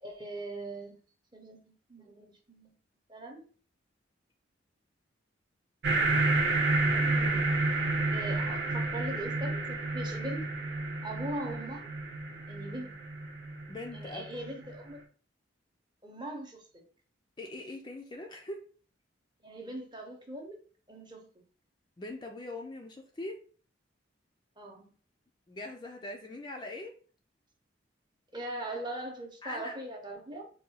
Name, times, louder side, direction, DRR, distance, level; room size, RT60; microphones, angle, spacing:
voice 1, 0.0-1.0 1.3-2.7 3.1-3.5 8.1-10.5 11.0-11.9 12.5-13.0 13.9-15.0 16.0-16.7 19.4-20.6 20.9-21.3 24.6-24.9 28.3-30.5, right 1 dB, 25° right, 0.7 m, -40 dB
sound 1, 5.8-14.8, right 2 dB, 60° right, 0.6 m, -30 dB
voice 2, 6.8-7.5 13.7-14.5 17.4-18.6 22.0-23.4 25.5-26.9 29.4-29.8, left 2 dB, 25° left, 0.4 m, -42 dB
4.6 x 2.2 x 2.8 m
head